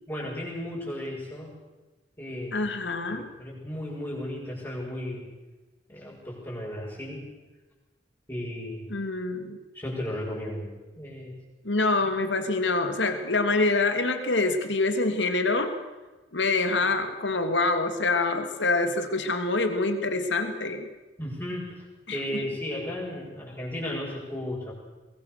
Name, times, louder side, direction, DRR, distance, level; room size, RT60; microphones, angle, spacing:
voice 1, 0.1-1.5 2.2-2.6 3.1-5.2 5.9-7.2 8.3-8.9 9.7-10.7 10.9-11.3 21.2-21.8 22.1-24.7, left 1 dB, 15° left, -8 dB, 6.9 m, -34 dB
voice 2, 2.5-3.3 8.9-9.6 11.6-15.7 16.3-20.9 22.1-22.4, left 3 dB, 75° left, 7 dB, 2.8 m, -26 dB
23.0 x 22.0 x 6.8 m, 1.2 s
head